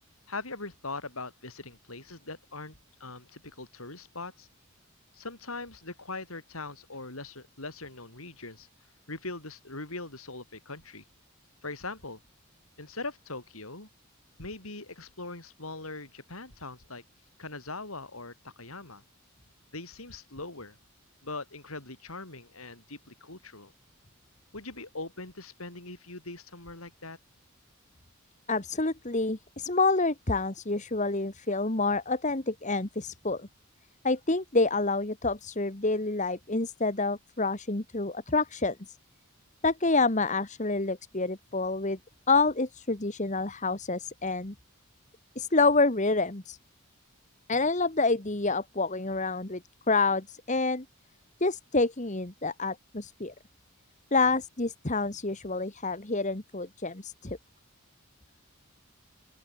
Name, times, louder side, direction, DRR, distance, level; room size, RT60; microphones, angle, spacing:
voice 1, 0.3-4.5 5.1-8.7 9.1-11.0 11.6-12.2 12.8-13.9 14.4-17.0 17.4-19.0 19.7-20.8 21.2-23.7 24.5-27.2, left 3 dB, 80° left, 6.7 m, -41 dB
voice 2, 28.5-33.5 34.0-39.0 39.6-42.0 42.3-44.5 45.3-46.6 47.5-49.6 49.9-50.8 51.4-53.3 54.1-57.4, left 3 dB, 35° left, 1.7 m, -28 dB
open air
head